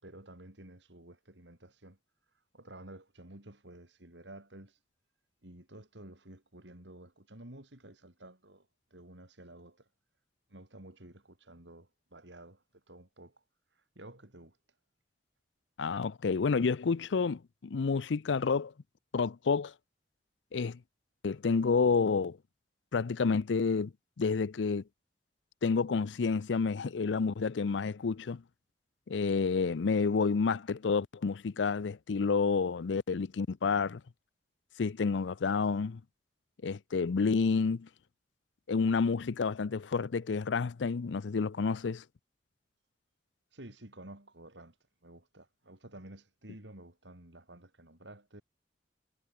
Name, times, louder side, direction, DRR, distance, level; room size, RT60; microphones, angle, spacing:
voice 1, 0.0-2.0 2.5-4.8 5.4-9.9 10.5-13.4 13.7-14.6 43.5-44.8 45.0-48.4, right 1 dB, 80° right, 4.8 m, -52 dB
voice 2, 15.8-18.7 19.1-19.7 20.5-20.8 21.2-22.4 22.9-23.9 24.2-24.8 25.6-28.4 29.1-34.0 34.8-36.0 36.6-37.9 38.7-42.0, left 5 dB, 90° left, 0.5 m, -29 dB
head